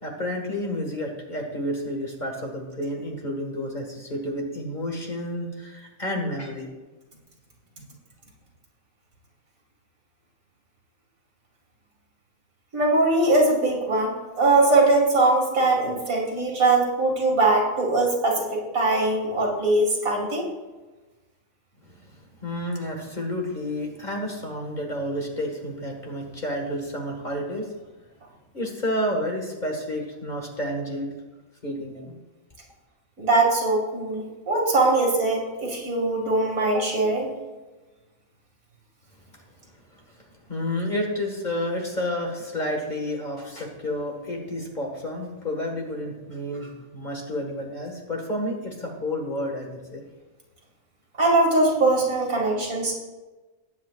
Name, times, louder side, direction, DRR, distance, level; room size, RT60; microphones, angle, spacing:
voice 1, 0.0-6.7 21.8-27.8 28.5-31.1 31.6-32.1 39.9-50.0, left 1 dB, 35° left, 1 dB, 1.9 m, -30 dB
voice 2, 12.7-20.5 33.2-37.3 51.2-52.9, right 2 dB, 80° right, -2 dB, 2.7 m, -21 dB
19.5 x 8.5 x 2.5 m, 1.2 s
omnidirectional pair, 1.4 m